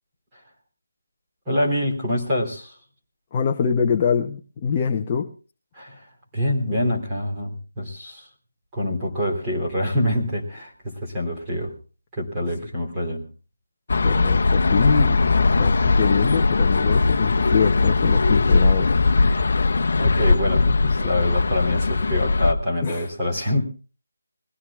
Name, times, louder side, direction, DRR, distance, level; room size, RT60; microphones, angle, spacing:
voice 1, 1.4-2.8 5.7-6.1 6.3-8.3 8.7-11.7 12.1-13.3 19.2-19.5 20.0-23.6, left 1 dB, 10° right, -5 dB, 3.2 m, -25 dB
voice 2, 3.3-5.3 14.0-18.9 19.3-19.4 22.8-23.1, left 6 dB, 15° left, 3 dB, 0.7 m, -24 dB
sound 1, 13.9-22.5, left 3 dB, 45° left, 1.0 m, -19 dB
22.0 x 16.5 x 2.4 m, 0.36 s
figure-of-eight pair, 175°, 0 cm